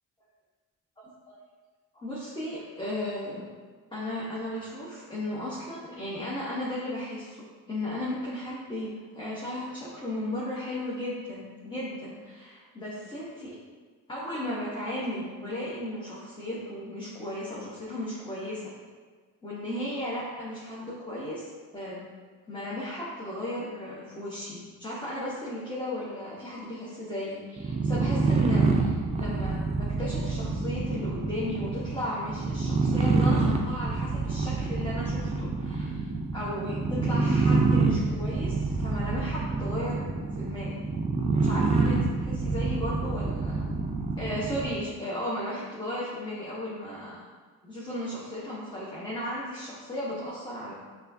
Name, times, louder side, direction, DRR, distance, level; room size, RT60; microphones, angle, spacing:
voice 1, 1.9-3.4 3.9-13.5 14.1-18.7 19.4-22.0 22.5-40.1 40.4-40.8 41.3-43.7 44.2-47.2 47.6-50.7, left 1 dB, 15° left, -8 dB, 0.8 m, -35 dB
sound 1, 27.6-44.8, right 3 dB, 20° right, 0.4 m, -27 dB
5.5 x 2.4 x 2.6 m, 1.5 s
cardioid pair, 90°, 30 cm